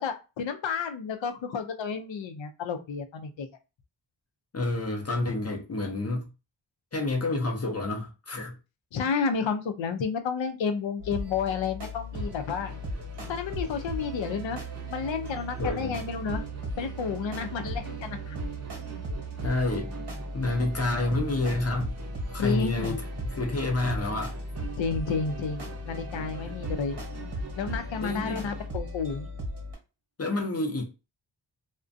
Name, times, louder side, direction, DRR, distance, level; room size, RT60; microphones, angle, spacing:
voice 1, 0.0-3.5 8.9-12.7 13.3-14.6 14.9-16.4 16.8-18.4 22.4-23.0 24.8-27.0 27.6-29.3, left 5 dB, 80° left, 0.5 m, -31 dB
voice 2, 4.5-6.3 6.9-8.5 15.6-16.0 19.4-19.9 20.3-22.0 22.3-24.4 26.5-26.6 28.0-28.4 30.2-30.8, left 2 dB, 35° left, 0.5 m, -29 dB
sound 1, 11.0-29.8, equal, 60° right, 0.9 m, -37 dB
Musical instrument, 12.1-28.8, right 4 dB, 35° right, 0.6 m, -45 dB
2.4 x 2.1 x 2.5 m
wide cardioid pair, 90°, 44 cm